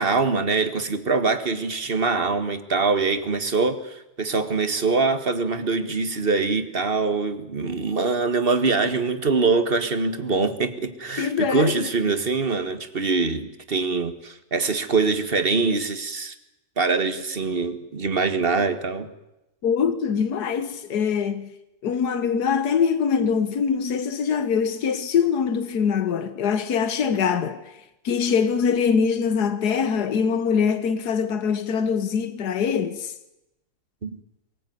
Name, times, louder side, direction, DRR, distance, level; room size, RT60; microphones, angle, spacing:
voice 1, 0.0-16.3 16.8-19.1 34.0-34.1, right 4 dB, 35° right, 1.9 m, -23 dB
voice 2, 11.2-11.9 19.6-21.5 21.8-27.8 28.0-33.1, left 6 dB, 85° left, 1.7 m, -23 dB
23.5 x 19.0 x 9.5 m
omnidirectional pair, 1.6 m